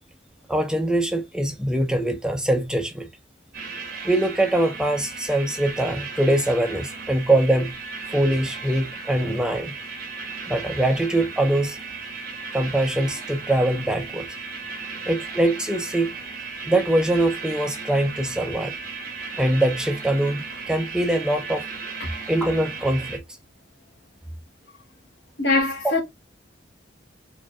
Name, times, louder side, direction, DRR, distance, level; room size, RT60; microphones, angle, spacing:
voice 1, 0.5-3.1 4.0-7.8 8.1-9.7 10.5-11.8 12.5-14.3 15.1-16.1 16.7-18.7 19.4-21.6 22.3-23.2 25.8-25.9, right 1 dB, 5° right, 0.4 m, -23 dB
sound 1, 3.5-23.2, right 4 dB, 50° right, 1.0 m, -36 dB
voice 2, 25.4-26.0, left 3 dB, 65° left, 1.0 m, -22 dB
4.7 x 2.5 x 2.2 m
head